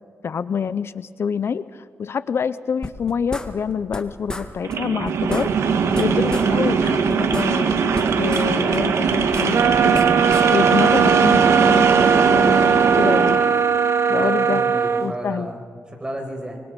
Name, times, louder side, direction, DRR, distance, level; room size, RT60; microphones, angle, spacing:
voice 1, 0.2-5.5 6.0-10.0 10.5-13.4 14.1-14.6 15.0-15.5, left 6 dB, 65° left, 15 dB, 0.6 m, -26 dB
sound 1, 2.8-4.0 4.3-4.5 4.7-4.8 5.0-6.5 6.8-8.5 8.7-10.5, left 1 dB, 15° left, 2.0 m, -32 dB
sound 2, 4.6-13.5, right 5 dB, 90° right, 1.7 m, -20 dB
sound 3, 9.5-15.1, right 6 dB, 70° right, 1.1 m, -18 dB
voice 2, 14.1-15.6 16.0-16.6, right 1 dB, 20° right, 2 dB, 5.6 m, -32 dB
24.5 x 24.0 x 5.3 m, 2.1 s
cardioid pair, 75°, 5 cm